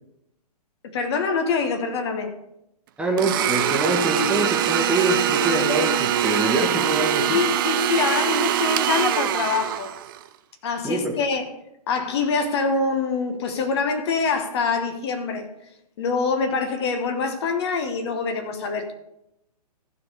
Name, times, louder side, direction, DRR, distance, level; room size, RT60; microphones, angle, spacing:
voice 1, 0.8-2.3 7.3-9.9 10.6-11.5 11.9-15.5 16.0-18.9, left 4 dB, 40° left, 1.1 m, -25 dB
voice 2, 3.0-7.4 10.8-11.1, right 1 dB, 5° right, 1.2 m, -24 dB
Domestic sounds home sounds, 3.2-10.2, right 11 dB, 30° right, 0.5 m, -23 dB
15.0 x 5.0 x 4.8 m
figure-of-eight pair, 125°, 21 cm